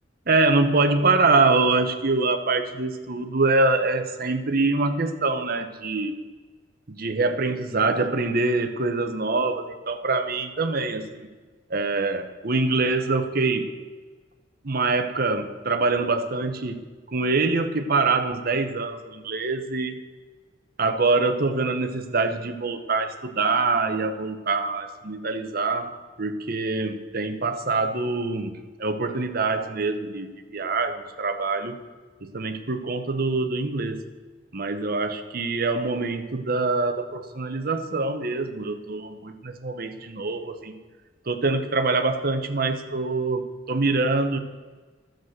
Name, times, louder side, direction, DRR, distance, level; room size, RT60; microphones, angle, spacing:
voice 1, 0.3-6.2 6.9-11.3 11.7-13.8 14.6-20.0 20.8-31.8 32.2-34.0 34.5-40.8 41.3-44.4, right 3 dB, 50° right, 7 dB, 0.9 m, -24 dB
12.0 x 7.7 x 6.5 m, 1.4 s
head